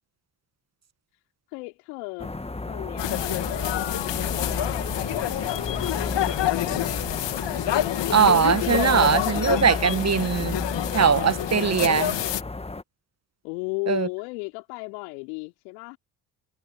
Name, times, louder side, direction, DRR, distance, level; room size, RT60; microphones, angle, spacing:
voice 1, 1.5-2.4 2.7-3.2 4.3-6.9 13.4-16.0, left 34 dB, 75° left, 3.7 m, -35 dB
sound 1, 2.2-12.8, left 2 dB, 10° left, 1.5 m, -33 dB
sound 2, 3.0-12.4, left 13 dB, 60° left, 2.1 m, -27 dB
voice 2, 8.1-10.6 10.9-12.1 13.9-14.1, right 6 dB, 30° right, 1.6 m, -21 dB
hypercardioid pair, 45°, 49 cm